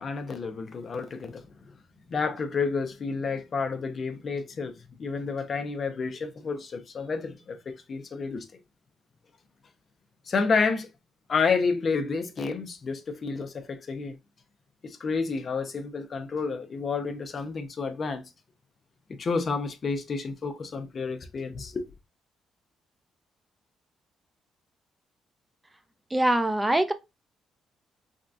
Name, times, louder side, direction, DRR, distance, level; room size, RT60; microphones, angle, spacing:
voice 1, 0.0-1.5 2.1-4.7 5.0-8.5 10.3-10.9 11.3-14.2 14.8-18.2 19.2-21.9, left 4 dB, 45° left, 0.6 m, -30 dB
voice 2, 26.1-26.9, right 1 dB, 10° right, 0.4 m, -23 dB
3.6 x 2.3 x 2.5 m
cardioid pair, 90°, 0 cm